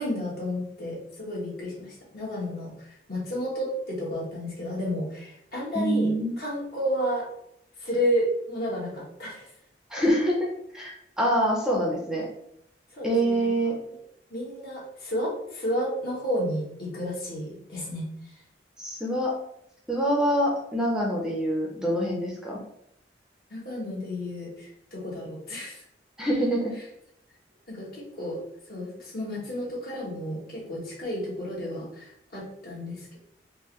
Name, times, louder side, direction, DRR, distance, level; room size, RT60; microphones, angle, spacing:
voice 1, 0.0-7.3 7.8-9.5 12.9-13.7 14.3-18.1 23.5-25.8 27.7-28.4 28.7-33.2, equal, 55° left, -5 dB, 1.4 m, -31 dB
voice 2, 5.7-6.3 9.9-10.5 10.7-12.3 13.0-13.7 18.8-19.3 19.9-22.6 26.2-26.8, right 1 dB, 5° right, -3 dB, 0.5 m, -25 dB
3.6 x 2.6 x 3.0 m, 0.76 s
head